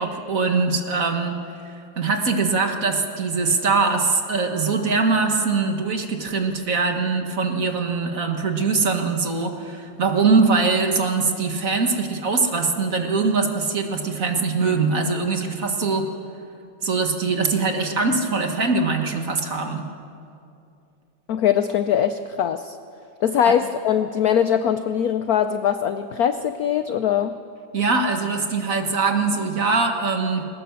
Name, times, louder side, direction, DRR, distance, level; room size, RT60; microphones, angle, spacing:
voice 1, 0.0-16.1 16.8-19.9 23.4-23.5 27.7-30.4, right 4 dB, 45° right, 4 dB, 1.7 m, -22 dB
voice 2, 21.3-22.8 23.2-27.3, left 9 dB, 75° left, 10 dB, 0.8 m, -21 dB
21.5 x 18.5 x 7.0 m, 2.6 s
omnidirectional pair, 2.3 m